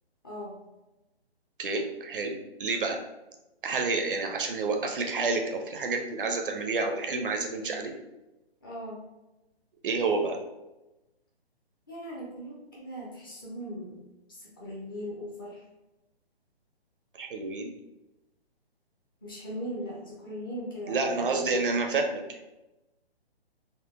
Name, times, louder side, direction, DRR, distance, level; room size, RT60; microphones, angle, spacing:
voice 1, 0.2-0.6 8.6-9.0 11.9-14.0 14.3-15.6 19.2-21.5, equal, 20° left, -5 dB, 0.5 m, -39 dB
voice 2, 1.6-3.0 3.6-7.9 9.8-10.4 17.2-17.7 20.9-22.2, right 3 dB, 55° right, 3 dB, 0.5 m, -29 dB
3.6 x 2.1 x 2.4 m, 1.0 s
hypercardioid pair, 150°, 32 cm